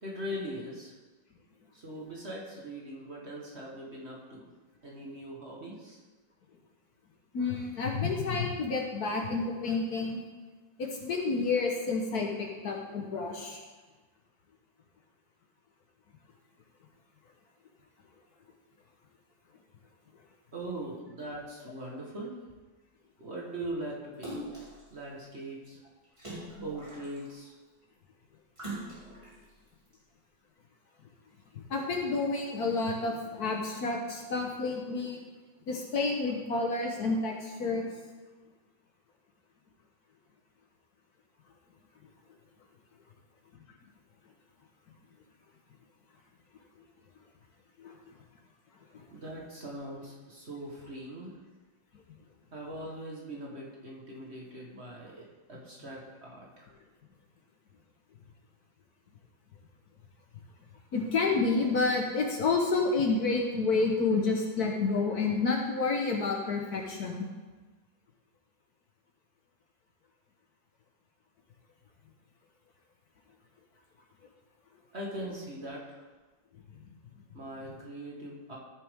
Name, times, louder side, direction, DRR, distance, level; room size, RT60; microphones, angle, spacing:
voice 1, 0.0-0.9 1.7-4.5 4.8-6.0 20.5-22.4 23.2-24.6 24.9-25.8 26.6-27.6 49.1-51.4 52.5-56.7 74.9-76.1 77.3-78.6, right 1 dB, 35° right, -3 dB, 1.5 m, -41 dB
voice 2, 7.3-10.2 10.8-13.6 31.5-35.2 35.7-37.9 47.8-47.9 60.9-67.2, left 3 dB, 60° left, 1 dB, 1.4 m, -29 dB
Splash splatter, 24.2-24.8 26.2-27.4 28.6-29.3 29.9-30.0, right 1 dB, 15° right, 2.3 m, -41 dB
14.0 x 6.7 x 3.6 m, 1.3 s
omnidirectional pair, 2.1 m